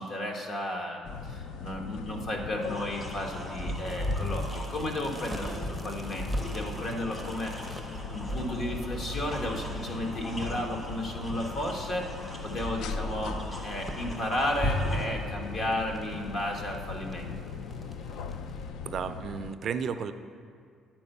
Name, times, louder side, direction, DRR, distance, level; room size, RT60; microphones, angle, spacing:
voice 1, 0.0-12.1 12.4-13.4 13.6-17.3, left 1 dB, 50° left, 2 dB, 1.1 m, -33 dB
sound 1, 1.0-19.6, left 5 dB, 75° left, 0.3 m, -40 dB
sound 2, 2.6-15.1, left 1 dB, 30° left, 1.6 m, -36 dB
sound 3, 3.2-18.7, equal, 5° left, 0.6 m, -49 dB
voice 2, 18.9-20.1, right 6 dB, 50° right, 10 dB, 0.3 m, -33 dB
9.4 x 4.5 x 5.4 m, 2.2 s
cardioid pair, 115°, 0 cm